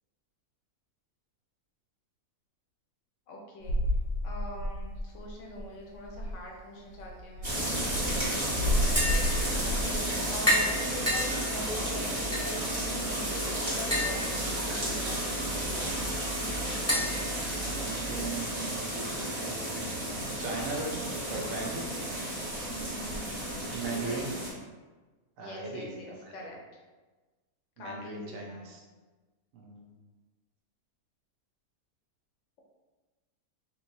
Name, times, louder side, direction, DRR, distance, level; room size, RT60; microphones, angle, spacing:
voice 1, 3.3-3.8 4.2-7.6 9.5-15.4 22.9-24.4 25.4-26.6 27.8-28.7, left 1 dB, 60° left, -1 dB, 0.9 m, -43 dB
sound 1, 3.6-5.3 5.6-5.7 6.0-6.4 7.0-10.0, left 1 dB, 85° left, 1.1 m, -31 dB
sound 2, 7.4-24.5, right 1 dB, 30° right, 1.2 m, -33 dB
voice 2, 8.6-8.9 17.4-21.9 23.7-24.3 25.4-26.3 27.8-28.8 29.5-29.9, right 3 dB, 65° right, 0 dB, 0.9 m, -39 dB
Tap, 8.8-18.3, equal, 15° left, 0.5 m, -34 dB
3.2 x 3.0 x 2.6 m, 1.3 s
omnidirectional pair, 1.6 m